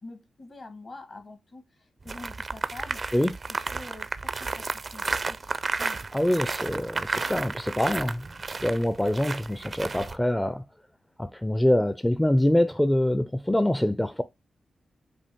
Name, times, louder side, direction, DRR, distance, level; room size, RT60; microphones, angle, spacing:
voice 1, 0.0-3.0 3.5-6.0, left 2 dB, 55° left, 1.5 m, -46 dB
sound 1, 2.1-10.1, right 4 dB, 50° right, 0.4 m, -32 dB
voice 2, 6.1-8.3 8.6-10.6 11.2-14.2, left 1 dB, 10° left, 0.4 m, -24 dB
5.2 x 2.5 x 3.5 m
supercardioid pair, 45°, 0 cm